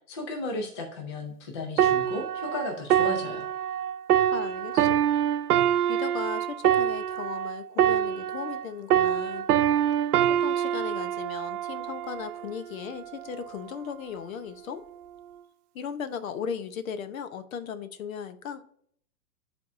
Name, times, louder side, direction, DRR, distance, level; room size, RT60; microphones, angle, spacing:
voice 1, 0.1-3.5, left 2 dB, 20° left, 3 dB, 0.4 m, -35 dB
sound 1, 1.8-8.6 8.9-12.5 13.1-13.3, right 10 dB, 70° right, 0.6 m, -25 dB
voice 2, 4.3-5.1 5.9-9.5 10.4-14.8 15.7-18.6, left 7 dB, 60° left, 11 dB, 0.8 m, -37 dB
10.5 x 3.6 x 2.6 m, 0.62 s
hypercardioid pair, 150°, 47 cm